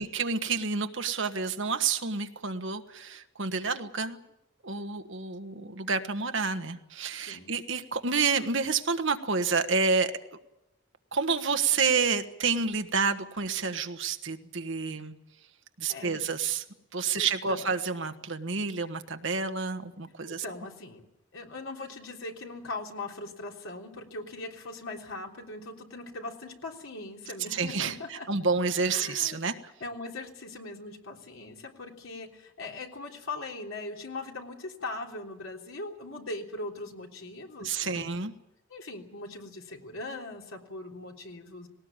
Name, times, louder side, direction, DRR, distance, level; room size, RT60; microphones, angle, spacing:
voice 1, 0.0-4.2 4.6-10.1 11.1-15.1 15.8-16.6 16.9-20.4 27.5-29.5 37.6-38.3, right 5 dB, 65° right, 7 dB, 1.4 m, -29 dB
voice 2, 7.2-7.5 15.9-16.2 17.1-17.6 20.2-21.0 21.3-28.3 28.9-29.4 29.8-38.1 38.7-41.7, left 2 dB, 75° left, 1 dB, 3.5 m, -40 dB
19.5 x 18.5 x 8.9 m, 0.88 s
head